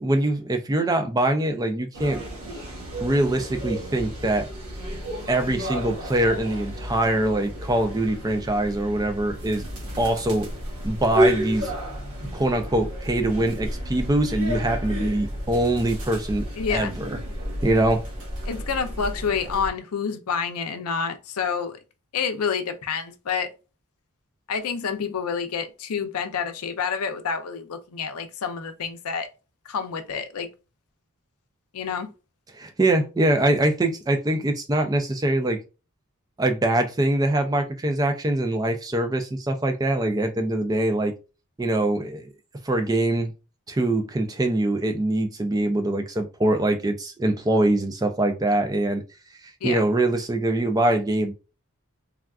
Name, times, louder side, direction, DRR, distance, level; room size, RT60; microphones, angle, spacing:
voice 1, 0.0-2.2 3.0-4.5 5.3-9.6 10.0-10.5 10.8-11.7 12.3-17.2 17.6-18.0 32.5-35.6 36.4-41.1 41.6-42.3 42.6-43.3 43.7-49.0 49.4-51.3, right 1 dB, 15° right, 0.3 m, -23 dB
sound 1, 1.9-19.7, equal, 85° right, 1.1 m, -31 dB
voice 2, 16.6-16.9 18.5-21.8 22.1-23.5 24.5-29.3 29.7-30.5 31.7-32.1 49.6-49.9, left 6 dB, 85° left, 0.5 m, -28 dB
3.4 x 2.3 x 2.3 m
head